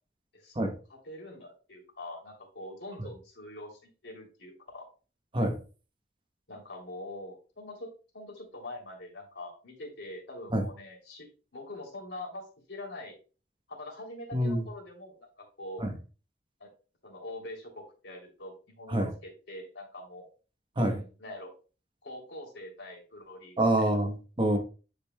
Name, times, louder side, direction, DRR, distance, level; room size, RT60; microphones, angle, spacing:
voice 1, 0.3-4.8 6.5-7.9 8.1-13.1 13.7-15.3 15.6-15.8 16.6-16.7 17.0-20.3 20.8-21.5 22.0-23.9, left 1 dB, 70° left, 3.0 m, -44 dB
voice 2, 14.3-14.6 15.8-15.9 18.9-19.1 20.8-21.0 23.6-24.6, right 1 dB, 25° right, 1.0 m, -26 dB
9.9 x 5.2 x 2.2 m
head